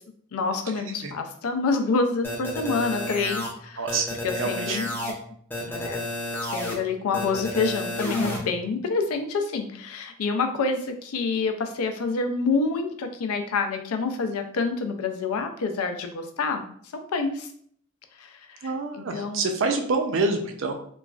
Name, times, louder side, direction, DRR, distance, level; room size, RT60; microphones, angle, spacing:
voice 1, 0.3-3.9 4.2-5.2 5.7-6.1 6.4-16.7 16.9-17.5 18.2-19.4, left 4 dB, 90° left, 6 dB, 0.4 m, -27 dB
sound 1, 2.2-3.5 3.9-5.1 5.5-6.7 7.1-8.4, left 1 dB, 10° left, 0.4 m, -30 dB
voice 2, 3.8-4.1 4.4-4.8 18.6-20.7, right 3 dB, 60° right, 4 dB, 0.4 m, -26 dB
3.0 x 2.3 x 2.3 m, 0.62 s
head